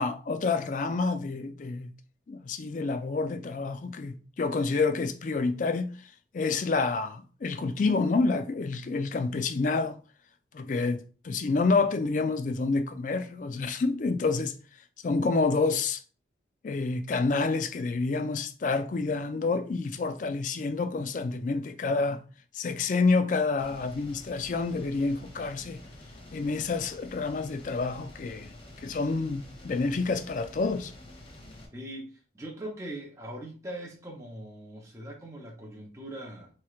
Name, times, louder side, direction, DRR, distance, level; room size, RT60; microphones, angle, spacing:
voice 1, 0.0-1.9 2.3-5.9 6.3-10.0 10.5-14.5 15.0-16.0 16.6-22.2 22.5-25.8 26.3-28.5 28.8-30.9, left 3 dB, 45° left, 0.3 m, -28 dB
sound 1, 23.6-31.7, left 1 dB, 30° left, 0.7 m, -48 dB
voice 2, 31.7-36.5, right 1 dB, 15° right, 0.7 m, -41 dB
4.3 x 3.1 x 2.4 m
head